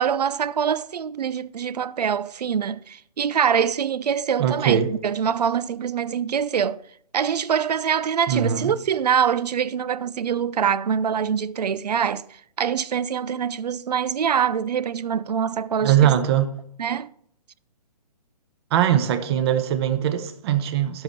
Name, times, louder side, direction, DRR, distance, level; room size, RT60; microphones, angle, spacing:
voice 1, 0.0-6.8 7.1-12.3 12.6-16.1 16.8-17.1, right 7 dB, 85° right, 0.5 m, -24 dB
voice 2, 4.4-4.9 8.3-8.7 15.8-16.5 18.7-21.0, right 10 dB, 40° right, 1.0 m, -21 dB
10.5 x 7.9 x 4.3 m
hypercardioid pair, 140°, 20 cm